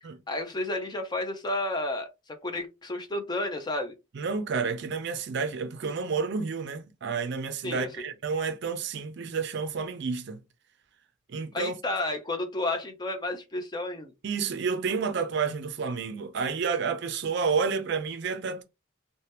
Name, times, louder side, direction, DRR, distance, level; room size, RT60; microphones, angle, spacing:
voice 1, 0.3-2.1 2.4-3.9 7.6-7.9 11.5-14.1, left 2 dB, 20° left, 0.4 m, -31 dB
voice 2, 4.1-10.4 11.3-11.8 14.2-18.6, right 5 dB, 55° right, 0.4 m, -30 dB
2.8 x 2.1 x 3.2 m
head